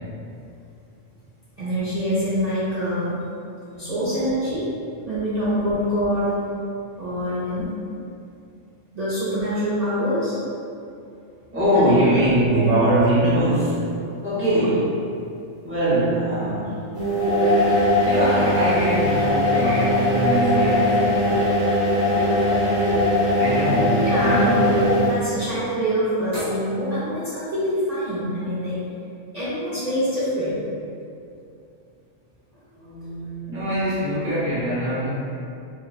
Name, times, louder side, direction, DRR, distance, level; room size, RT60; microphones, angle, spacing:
voice 1, 1.6-3.2 3.8-4.7 5.1-6.4 7.0-7.7 8.9-10.4 11.7-11.8 12.4-12.9 23.5-24.7 25.0-28.8 29.3-30.7, equal, 55° right, -13 dB, 0.4 m, -25 dB
voice 2, 3.6-4.0 11.5-13.9 14.2-15.1 15.6-16.8 17.7-21.6 23.4-24.7 32.7-35.1, right 1 dB, 15° right, -12 dB, 0.6 m, -22 dB
sound 1, 17.0-25.3 26.3-26.4, left 1 dB, 80° right, 1.3 m, -20 dB
2.8 x 2.0 x 2.3 m, 2.5 s
omnidirectional pair, 1.4 m